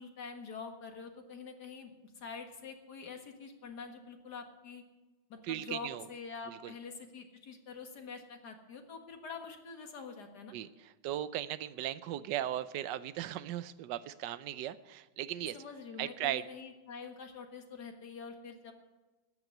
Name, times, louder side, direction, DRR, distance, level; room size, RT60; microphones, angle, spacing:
voice 1, 0.0-4.8 5.3-10.5 15.5-18.7, left 5 dB, 55° left, 4 dB, 2.1 m, -46 dB
voice 2, 5.4-6.1 6.5-6.7 10.5-15.6 16.0-16.4, right 12 dB, 70° right, 14 dB, 1.2 m, -37 dB
14.0 x 9.5 x 9.3 m, 1.2 s
omnidirectional pair, 2.2 m